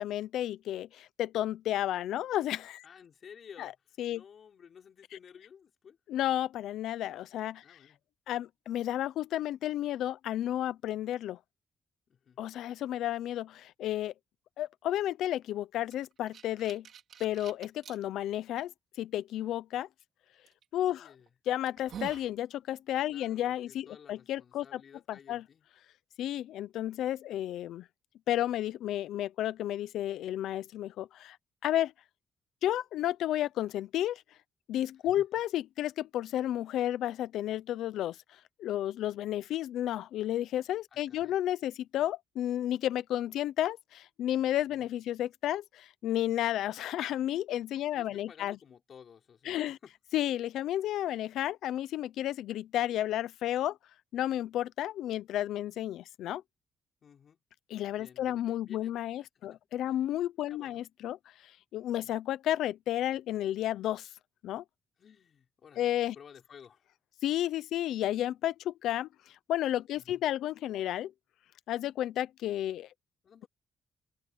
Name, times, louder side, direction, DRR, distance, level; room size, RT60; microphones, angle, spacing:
voice 1, 0.0-2.8 3.6-3.7 4.0-4.2 6.1-7.8 8.3-11.4 12.4-14.1 14.6-16.9 17.2-18.7 19.0-19.9 20.7-21.1 21.5-24.8 25.1-25.4 26.2-27.9 28.3-31.4 31.6-31.9 32.6-34.2 34.7-38.2 38.6-48.6 49.5-49.8 50.1-53.8 54.1-56.4 57.7-61.2 61.7-64.1 64.4-64.6 65.8-66.2 67.2-69.1 69.5-71.1 71.7-72.9, left 12 dB, 90° left, 0.6 m, -32 dB
voice 2, 2.8-3.7 4.1-6.0 7.6-8.0 12.1-12.4 20.9-21.3 23.1-25.7 35.2-35.3 40.9-41.4 44.7-44.9 47.9-49.9 57.0-57.4 58.0-58.9 59.2-59.6 59.9-60.0 60.5-60.8 62.0-62.2 65.0-66.9 69.9-70.2 73.2-73.5, left 7 dB, 45° left, 5.9 m, -54 dB
sound 1, 15.9-18.0 18.6-18.7 20.5-20.6 21.2-21.3 21.7-22.3, right 8 dB, 60° right, 4.3 m, -45 dB
cardioid pair, 145°, 0 cm